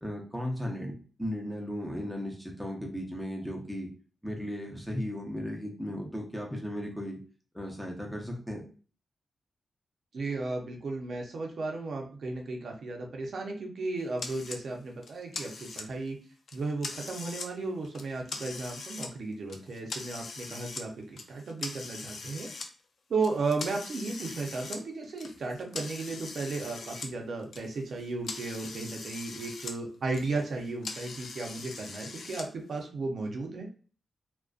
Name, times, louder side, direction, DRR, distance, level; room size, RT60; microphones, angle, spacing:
voice 1, 0.0-3.9 4.2-7.2 7.5-8.6, equal, ahead, -1 dB, 0.6 m, -36 dB
voice 2, 10.1-16.2 16.5-22.5 23.1-33.7, right 3 dB, 70° right, 1 dB, 0.5 m, -35 dB
sound 1, 14.2-14.6 15.0-16.1 16.5-17.5 17.8-19.1 19.5-20.9 21.2-22.7 23.2-27.1 27.4-29.8 30.0-32.4, left 4 dB, 70° left, 0.3 m, -41 dB
2.4 x 2.1 x 2.3 m, 0.39 s
cardioid pair, 95°, 0 cm